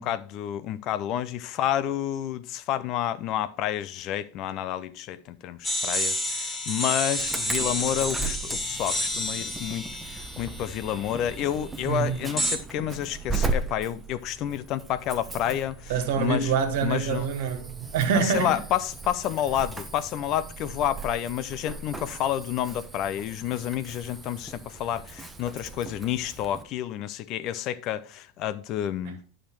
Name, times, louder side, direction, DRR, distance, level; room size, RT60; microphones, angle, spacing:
voice 1, 0.0-16.5 16.8-17.3 18.1-29.2, left 11 dB, 45° left, 0.6 m, -30 dB
sound 1, 5.6-11.3 12.4-12.6, equal, 10° left, 1.9 m, -30 dB
Insect / Alarm, 7.2-26.6, right 3 dB, 10° right, 0.9 m, -37 dB
voice 2, 11.9-12.2 15.9-18.6, right 7 dB, 60° right, 1.7 m, -26 dB
10.0 x 5.0 x 4.6 m
figure-of-eight pair, 85°, 0 cm